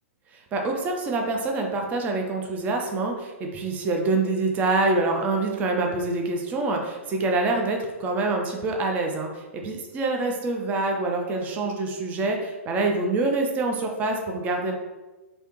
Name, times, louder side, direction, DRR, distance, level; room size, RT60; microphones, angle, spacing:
voice 1, 0.5-14.7, right 3 dB, 20° right, 2 dB, 0.4 m, -26 dB
3.2 x 2.7 x 2.9 m, 1.1 s
figure-of-eight pair, 105°, 7 cm